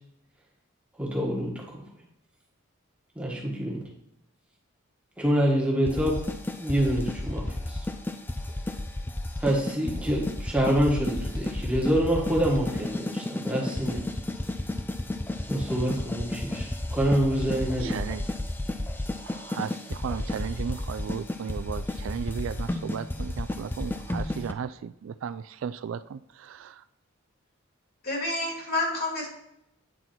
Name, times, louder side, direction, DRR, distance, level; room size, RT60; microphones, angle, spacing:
voice 1, 1.0-1.8 3.1-3.8 5.2-6.2 6.6-7.8 9.4-14.0 15.5-18.0, equal, 5° right, -3 dB, 1.4 m, -26 dB
sound 1, 5.8-24.5, left 1 dB, 10° left, 0.4 m, -32 dB
voice 2, 17.8-18.2 19.2-26.8, right 7 dB, 65° right, 13 dB, 0.3 m, -35 dB
voice 3, 28.0-29.3, left 2 dB, 45° left, -1 dB, 2.1 m, -29 dB
9.3 x 4.1 x 4.4 m, 0.81 s
head